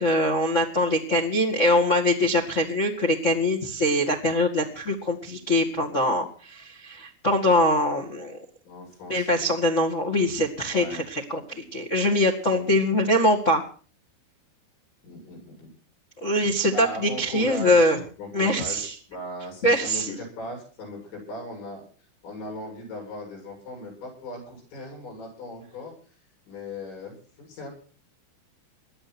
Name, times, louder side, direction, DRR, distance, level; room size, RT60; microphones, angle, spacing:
voice 1, 0.0-8.4 9.1-13.6 16.2-18.0 18.3-18.9 19.6-20.1, left 1 dB, 65° left, 2 dB, 0.7 m, -23 dB
voice 2, 8.7-9.5 10.7-11.1 12.6-12.8 15.0-15.7 16.7-21.8 22.2-26.0 26.5-27.7, left 1 dB, 85° left, 0 dB, 9.9 m, -38 dB
20.5 x 13.0 x 4.4 m, 0.40 s
omnidirectional pair, 5.1 m